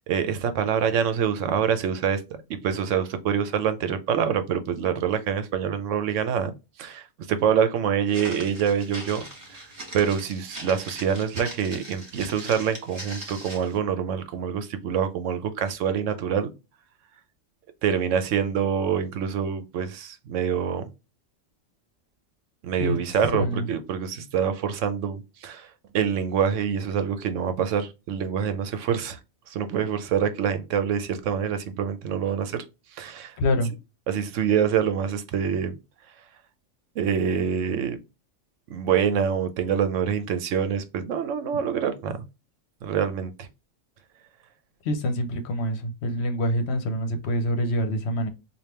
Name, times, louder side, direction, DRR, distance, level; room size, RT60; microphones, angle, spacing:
voice 1, 0.0-2.2 2.5-6.5 6.8-9.2 9.9-16.5 17.8-20.9 22.6-25.7 25.9-29.2 29.5-32.6 33.0-33.3 34.1-35.8 37.0-38.0 38.7-42.2 42.8-43.5, right 7 dB, 75° right, 1.0 m, -26 dB
Walk footsteps, 8.1-13.8, right 1 dB, 40° right, 1.7 m, -40 dB
voice 2, 23.3-23.7 33.4-33.7 44.8-48.3, equal, 60° left, 0.9 m, -26 dB
3.4 x 2.4 x 4.2 m
omnidirectional pair, 1.3 m